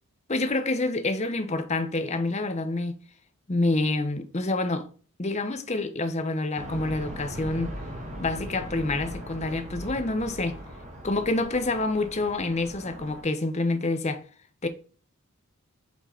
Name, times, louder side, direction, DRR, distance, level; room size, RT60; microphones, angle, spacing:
voice 1, 0.3-3.0 3.5-4.9 5.2-7.7 8.2-10.6 11.0-14.2 14.6-14.7, left 2 dB, 30° left, 0.7 m, -27 dB
sound 1, 6.6-13.2, equal, 30° right, 1.4 m, -39 dB
5.7 x 4.4 x 4.4 m
head